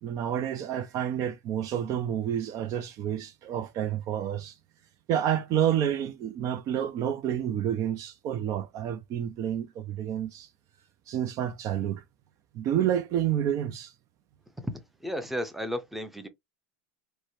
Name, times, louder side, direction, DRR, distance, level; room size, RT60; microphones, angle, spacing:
voice 1, 0.0-4.5 5.1-10.5 11.1-12.0 12.5-13.9, right 10 dB, 45° right, 0.4 m, -29 dB
voice 2, 14.6-16.3, equal, ahead, 0.6 m, -34 dB
3.0 x 2.1 x 2.7 m
hypercardioid pair, 105°, 8 cm